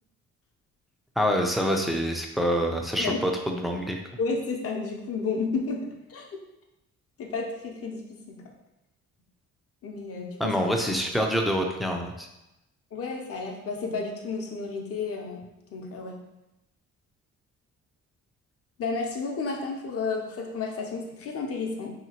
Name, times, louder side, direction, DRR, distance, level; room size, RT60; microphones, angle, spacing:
voice 1, 1.2-4.0 10.4-12.3, equal, ahead, 2 dB, 0.4 m, -26 dB
voice 2, 4.2-5.8 6.1-6.2 7.2-8.0 8.3-8.4 9.8-10.5 12.9-15.4 15.7-16.2 18.8-21.9, left 4 dB, 50° left, 1 dB, 0.6 m, -31 dB
2.8 x 2.7 x 2.8 m, 0.94 s
cardioid pair, 90°, 30 cm